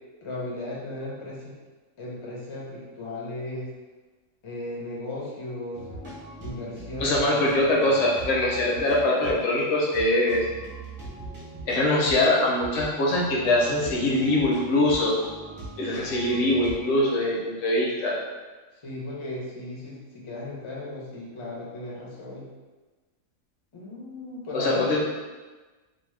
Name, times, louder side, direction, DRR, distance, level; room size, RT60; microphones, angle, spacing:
voice 1, 0.2-1.5 2.0-3.7 4.4-5.8 6.4-7.2 13.4-14.2 18.8-22.5 23.7-25.0, left 2 dB, 40° left, -5 dB, 0.4 m, -36 dB
sound 1, 5.7-16.8, right 2 dB, 30° right, 0.7 m, -41 dB
voice 2, 7.0-10.4 11.7-15.1 15.8-18.1 24.5-25.0, left 1 dB, 70° left, -3 dB, 0.9 m, -23 dB
2.7 x 2.0 x 3.1 m, 1.3 s
omnidirectional pair, 1.4 m